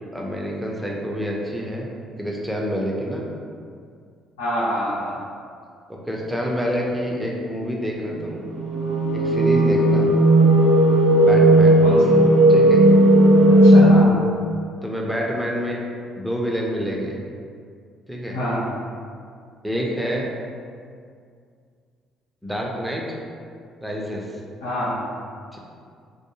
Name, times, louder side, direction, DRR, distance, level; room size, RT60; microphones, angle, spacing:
voice 1, 0.1-1.9 2.2-3.2 5.9-8.4 9.1-10.1 11.2-11.8 12.5-12.8 14.8-15.8 16.2-17.2 18.1-18.4 19.6-20.3 22.4-23.2 23.8-24.3 25.5-25.6, equal, ahead, -2 dB, 0.5 m, -27 dB
voice 2, 4.4-5.2 11.8-12.2 13.6-14.3 18.3-18.6 24.6-24.9, equal, 75° left, -9 dB, 0.5 m, -26 dB
sound 1, 8.4-13.9, right 1 dB, 65° right, 0.4 m, -14 dB
2.3 x 2.1 x 2.9 m, 2.2 s
figure-of-eight pair, 45°, 0 cm